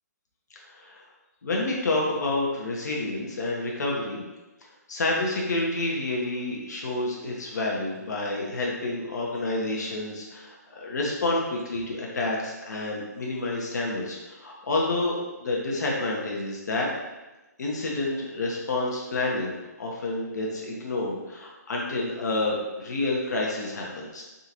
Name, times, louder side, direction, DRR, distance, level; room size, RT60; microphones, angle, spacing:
voice 1, 0.7-1.0 1.4-4.2 4.9-16.9 17.6-24.2, left 2 dB, 70° left, -2 dB, 0.9 m, -29 dB
3.9 x 3.7 x 2.9 m, 1.1 s
figure-of-eight pair, 135°, 9 cm